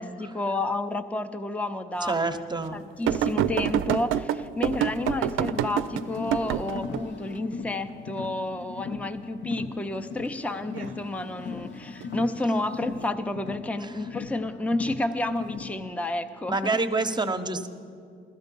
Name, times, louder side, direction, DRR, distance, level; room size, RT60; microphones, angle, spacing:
voice 1, 0.0-2.2 2.7-16.6, left 2 dB, 5° left, 8 dB, 0.6 m, -30 dB
voice 2, 2.1-2.8 13.8-13.9 16.5-17.7, right 3 dB, 20° right, 8 dB, 0.8 m, -27 dB
sound 1, 3.1-7.0 10.5-10.9 12.0-12.1, right 10 dB, 85° right, 0.5 m, -27 dB
Car, 4.8-15.9, left 5 dB, 70° left, 0.8 m, -38 dB
15.5 x 13.5 x 5.3 m, 2.4 s
cardioid pair, 90°, 20 cm